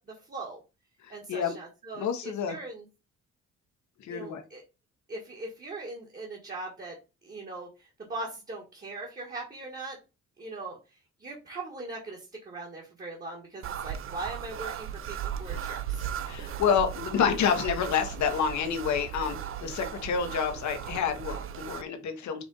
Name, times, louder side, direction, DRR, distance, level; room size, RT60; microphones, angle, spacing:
voice 1, 0.3-0.6 1.1-2.8 4.1-4.6 5.1-6.9 7.2-7.7 8.1-10.0 10.4-10.8 11.2-12.2 12.4-16.0, right 2 dB, 30° right, -1 dB, 1.4 m, -40 dB
voice 2, 1.0-1.5 1.9-2.6 4.0-4.4 16.3-22.4, left 7 dB, 70° left, 6 dB, 1.1 m, -28 dB
Dragging finger against wood, 13.6-21.8, right 9 dB, 45° right, 0.5 m, -37 dB
5.0 x 2.5 x 3.9 m, 0.29 s
cardioid pair, 90°, 30 cm